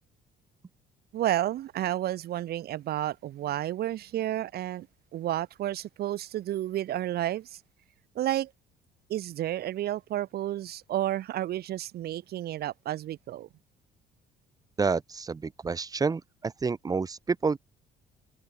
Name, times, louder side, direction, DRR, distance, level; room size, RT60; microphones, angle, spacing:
voice 1, 1.1-4.9 5.1-7.5 8.1-8.5 9.1-13.5, right 13 dB, 65° right, 6.4 m, -31 dB
voice 2, 14.8-17.6, right 4 dB, 20° right, 1.1 m, -29 dB
cardioid pair, 110°, 17 cm